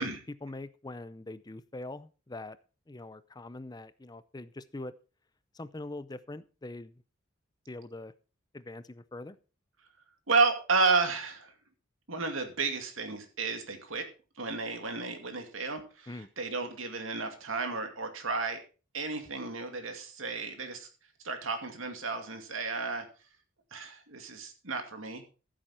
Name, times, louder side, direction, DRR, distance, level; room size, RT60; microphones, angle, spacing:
voice 1, 0.0-2.6 2.9-4.9 5.5-6.9 7.7-8.1 8.5-9.4 16.1-16.3, left 2 dB, 20° left, 15 dB, 0.5 m, -43 dB
voice 2, 10.3-11.5 12.1-14.1 14.4-18.6 18.9-20.9 21.2-23.1 23.7-25.2, right 4 dB, 90° right, 6 dB, 2.4 m, -32 dB
14.5 x 7.7 x 4.3 m, 0.35 s
head